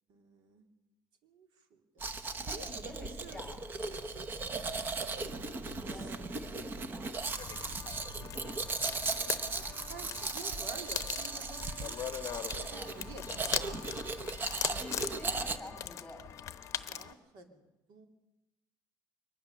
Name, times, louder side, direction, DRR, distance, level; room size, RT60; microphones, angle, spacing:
voice 1, 0.1-0.6 1.2-2.1 2.5-3.4 5.1-5.8 8.1-8.2 9.2-9.6 9.9-13.8 14.6-15.0 16.7-18.1, right 4 dB, 65° right, 5 dB, 2.6 m, -51 dB
Domestic sounds home sounds, 2.0-15.6, right 3 dB, 25° right, 0.9 m, -37 dB
voice 2, 2.3-3.7 5.5-7.2 12.7-13.9 14.8-16.2, left 1 dB, 5° left, 4 dB, 5.3 m, -50 dB
sound 1, 7.3-17.1, left 10 dB, 40° left, 0.9 m, -40 dB
22.5 x 19.5 x 6.8 m, 0.99 s
cardioid pair, 175°, 8 cm